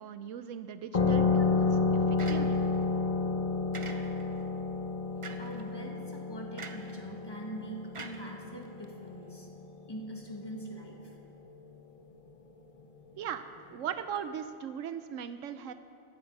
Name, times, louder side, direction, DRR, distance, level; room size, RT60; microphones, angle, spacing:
voice 1, 0.0-2.0 2.3-2.6 13.2-13.4 13.7-15.7, right 8 dB, 75° right, 11 dB, 0.9 m, -38 dB
sound 1, 0.9-10.1, left 4 dB, 35° left, 0.6 m, -30 dB
sound 2, 2.2-2.8 3.7-4.4 5.2-5.6 6.6-7.0 7.9-8.8, right 4 dB, 35° right, 0.5 m, -44 dB
voice 2, 5.4-9.5 9.9-11.1, right 1 dB, 20° left, 0 dB, 1.5 m, -43 dB
15.0 x 10.5 x 5.3 m, 2.5 s
omnidirectional pair, 1.4 m